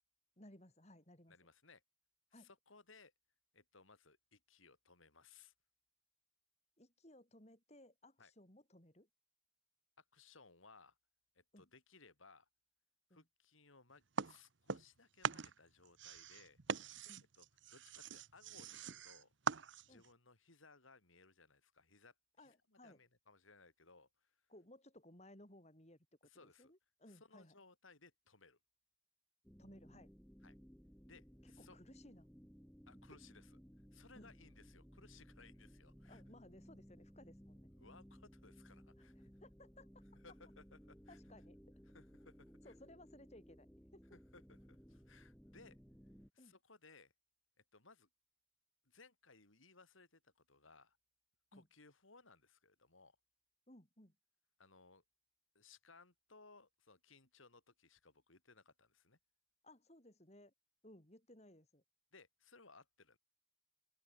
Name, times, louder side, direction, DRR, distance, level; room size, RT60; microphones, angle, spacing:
voice 1, 0.4-1.4 2.3-2.5 6.8-9.1 11.5-11.7 13.1-13.2 17.0-17.2 19.9-20.1 22.4-23.0 24.5-26.0 26.4-27.6 29.6-30.1 31.4-32.3 34.1-34.3 36.0-37.7 39.0-39.9 41.1-41.6 42.6-43.7 43.9-44.0 46.4-46.6 51.5-51.7 53.7-54.2 59.6-60.5 60.8-61.8, left 1 dB, 35° left, 4.2 m, -61 dB
voice 2, 1.3-1.8 2.3-3.1 3.5-5.5 8.2-8.3 10.0-11.0 11.3-12.5 13.1-16.6 17.4-17.5 17.7-19.3 19.8-24.4 26.2-26.7 27.1-28.6 30.4-30.5 31.0-31.8 32.9-33.6 33.9-36.2 37.8-39.3 40.2-41.2 41.9-42.7 44.1-45.8 46.3-47.1 47.7-48.1 48.8-51.0 51.5-53.2 54.6-55.0 55.5-59.2 62.1-63.2, left 4 dB, 90° left, 4.8 m, -64 dB
sound 1, 14.2-15.0 15.2-20.1, right 5 dB, 70° right, 0.9 m, -42 dB
sound 2, 29.4-46.3, equal, 5° left, 5.7 m, -61 dB
open air
head